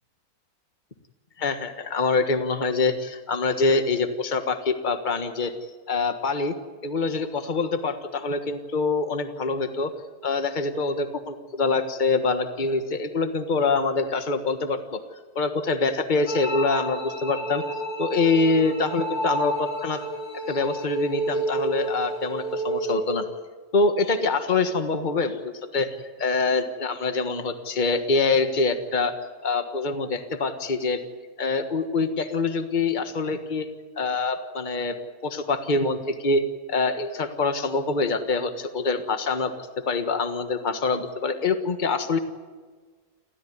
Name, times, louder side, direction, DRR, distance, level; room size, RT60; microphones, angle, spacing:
voice 1, 1.4-5.5 5.9-6.5 6.8-9.9 10.2-15.0 15.3-17.6 18.0-20.0 20.5-23.3 23.7-25.9 26.2-29.1 29.4-31.0 31.4-33.7 34.0-35.0 35.2-36.4 36.7-39.5 39.8-42.2, left 3 dB, 30° left, 7 dB, 1.6 m, -25 dB
sound 1, 16.3-23.3, right 1 dB, 65° left, 4.2 m, -30 dB
29.5 x 13.5 x 9.6 m, 1.5 s
omnidirectional pair, 1.6 m